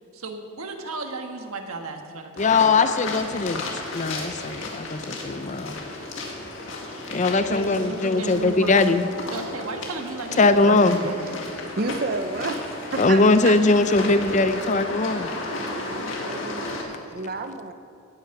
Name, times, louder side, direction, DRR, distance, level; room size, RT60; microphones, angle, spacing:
voice 1, 0.1-2.7 3.1-3.3 7.5-8.8 9.3-11.2, right 3 dB, 90° right, 4 dB, 1.5 m, -34 dB
sound 1, 2.4-16.8, left 2 dB, 60° left, 2.1 m, -34 dB
voice 2, 2.4-5.8 7.1-9.0 10.4-11.0 13.0-15.3, left 3 dB, 35° left, 11 dB, 0.5 m, -20 dB
voice 3, 10.9-11.3 11.8-13.6 15.5-17.7, right 3 dB, 45° right, 7 dB, 0.6 m, -32 dB
17.0 x 9.0 x 5.9 m, 2.5 s
head